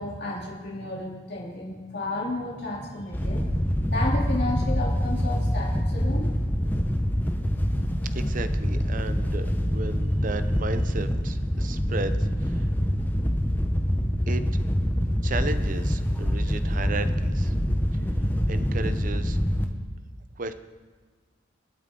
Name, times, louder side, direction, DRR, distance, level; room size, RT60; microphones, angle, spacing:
voice 1, 0.0-6.3 7.5-7.6, left 2 dB, 55° left, -5 dB, 3.4 m, -32 dB
Wind / Boat Water vehicle, 3.1-19.6, equal, 10° left, 1.0 m, -25 dB
voice 2, 8.1-12.7 14.3-14.4 15.2-17.5 17.9-19.4 20.4-20.5, right 3 dB, 40° right, 11 dB, 0.7 m, -35 dB
27.0 x 9.3 x 3.9 m, 1.5 s
head